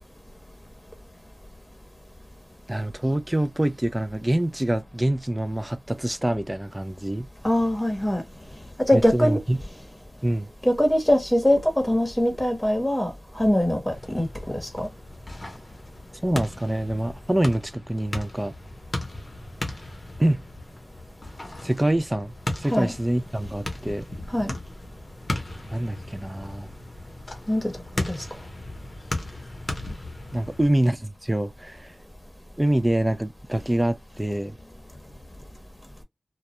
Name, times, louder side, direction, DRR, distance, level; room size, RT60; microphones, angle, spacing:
voice 1, 2.7-7.3 8.9-9.6 10.2-10.5 16.2-18.5 20.2-20.4 21.6-24.1 25.7-26.7 30.3-32.0 32.6-34.6, right 1 dB, 15° right, 0.4 m, -25 dB
voice 2, 7.4-8.2 8.9-9.4 10.6-13.1 13.4-14.3 14.8-14.9 22.7-22.9 24.3-24.5 27.5-27.6 28.1-28.2, left 1 dB, 5° left, 0.9 m, -22 dB
sound 1, 13.9-30.6, left 1 dB, 35° left, 0.8 m, -36 dB
2.3 x 2.1 x 2.9 m
wide cardioid pair, 65°, 0 cm